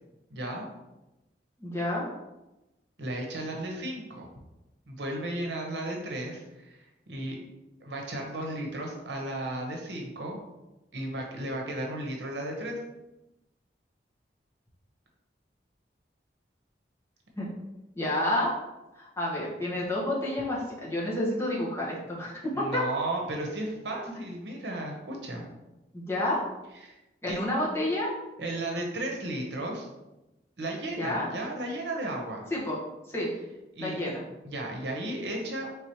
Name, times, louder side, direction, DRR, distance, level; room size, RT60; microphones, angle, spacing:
voice 1, 0.3-0.7 3.0-4.3 4.9-6.8 7.1-7.4 7.8-10.4 10.9-12.8 22.5-25.5 26.8-27.0 27.3-27.4 28.4-29.9 30.6-32.4 33.7-34.0 34.4-35.7, right 1 dB, 80° right, 1 dB, 0.9 m, -34 dB
voice 2, 1.6-2.1 17.4-17.5 18.0-18.5 18.9-22.8 25.9-26.4 27.2-28.1 31.0-31.3 32.5-32.8 33.1-33.3 33.8-34.2, left 1 dB, 15° left, -6 dB, 1.1 m, -29 dB
4.8 x 3.5 x 3.0 m, 0.99 s
head